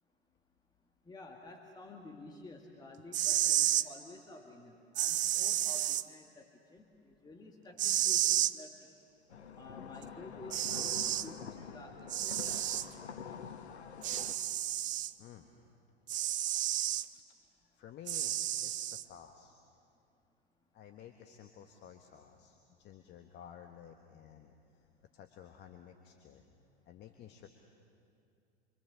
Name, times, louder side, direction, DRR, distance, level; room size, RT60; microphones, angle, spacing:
voice 1, 1.0-8.9 9.6-12.7, left 2 dB, 10° left, 2 dB, 1.9 m, -51 dB
sound 1, 3.0-3.9 5.0-6.0 7.8-8.5 10.0-10.1 10.5-11.3 12.1-12.9 14.0-15.1 16.1-17.1 18.1-19.0, right 12 dB, 25° right, 0.6 m, -31 dB
sound 2, 9.3-14.3, left 7 dB, 75° left, 1.3 m, -46 dB
voice 2, 15.2-15.5 17.1-17.2 17.7-19.6 20.7-24.8 25.1-26.4 26.9-27.5, left 9 dB, 30° left, 5 dB, 1.5 m, -53 dB
27.5 x 24.5 x 7.2 m, 2.5 s
figure-of-eight pair, 90°, 33 cm